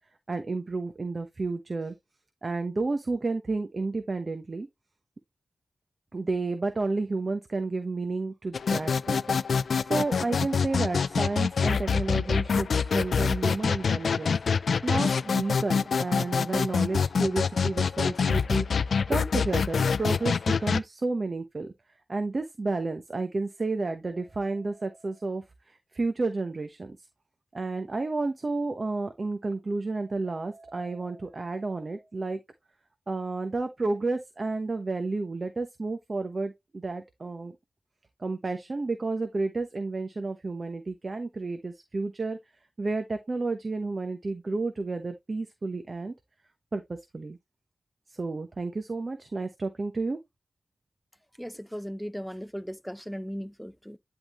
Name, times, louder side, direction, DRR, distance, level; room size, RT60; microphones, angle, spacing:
voice 1, 0.3-1.9 2.4-4.7 6.1-9.4 9.9-21.7 22.1-27.0 27.5-32.4 33.1-37.5 38.2-42.4 42.8-46.1 46.7-47.4 48.1-50.2, right 3 dB, 50° right, 1.0 m, -31 dB
sound 1, 8.5-20.8, left 5 dB, 85° left, 0.3 m, -26 dB
voice 2, 51.4-54.0, equal, ahead, 0.6 m, -37 dB
10.5 x 3.8 x 3.1 m
cardioid pair, 55°, 0 cm